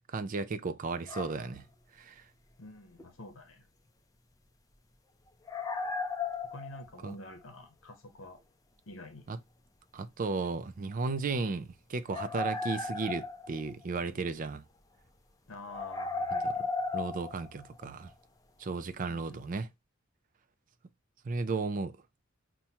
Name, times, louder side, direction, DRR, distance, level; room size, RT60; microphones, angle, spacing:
voice 1, 0.1-1.7 1.9-2.2 7.0-7.1 9.3-9.4 9.9-14.6 16.4-16.5 16.9-18.1 18.6-19.7 21.2-22.0, right 4 dB, 40° right, 0.4 m, -34 dB
sound 1, 1.1-1.5 3.0-3.1 5.5-7.1 10.4-10.5 12.1-13.8 15.7-18.1, left 3 dB, 15° left, 0.5 m, -35 dB
voice 2, 2.6-3.7 6.4-8.4 8.9-9.3 15.5-16.5 19.1-19.4, left 1 dB, 80° left, 0.7 m, -48 dB
5.6 x 2.2 x 2.8 m
head